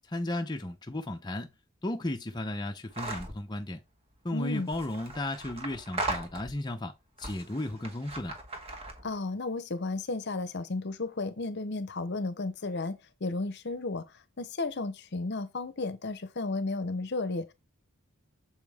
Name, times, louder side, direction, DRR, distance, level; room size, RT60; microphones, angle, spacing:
voice 1, 0.1-1.5 1.8-3.8 4.2-6.9 7.2-8.4, left 1 dB, 20° left, 0.6 m, -34 dB
sound 1, 2.9-3.4 4.5-6.7 7.2-9.2, right 2 dB, 25° right, 1.3 m, -38 dB
voice 2, 4.3-4.7 9.0-14.0 14.4-17.5, left 3 dB, 50° left, 0.8 m, -33 dB
7.0 x 5.2 x 3.5 m
head